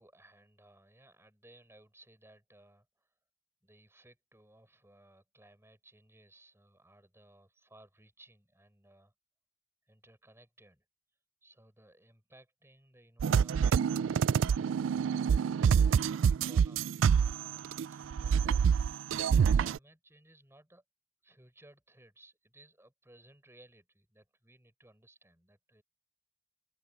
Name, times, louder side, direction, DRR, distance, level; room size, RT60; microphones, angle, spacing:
voice 1, 0.0-3.2 3.6-9.1 9.9-10.9 11.4-15.3 16.0-20.8 21.2-25.8, right 1 dB, 15° right, 7.0 m, -61 dB
sound 1, 13.2-17.9 18.1-19.8, right 7 dB, 70° right, 0.3 m, -26 dB
open air
head